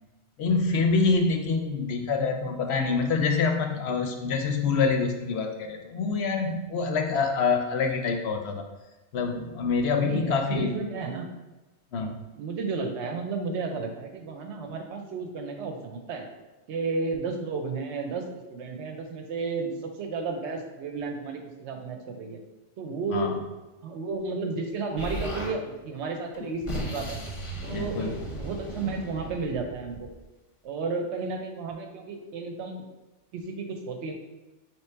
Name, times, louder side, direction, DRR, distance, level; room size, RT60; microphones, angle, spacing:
voice 1, 0.4-8.7 9.1-10.7 11.9-12.2 23.1-23.4 27.7-28.1, left 4 dB, 65° left, 4 dB, 0.8 m, -26 dB
voice 2, 10.0-11.3 12.4-16.3 16.7-22.4 22.8-23.3 23.8-27.2 27.6-30.1 30.6-32.8 33.3-34.1, right 4 dB, 70° right, 4 dB, 0.9 m, -32 dB
Explosion, 25.0-25.5 26.3-30.2, equal, 30° left, 0.6 m, -36 dB
3.8 x 3.0 x 4.4 m, 1.1 s
omnidirectional pair, 1.2 m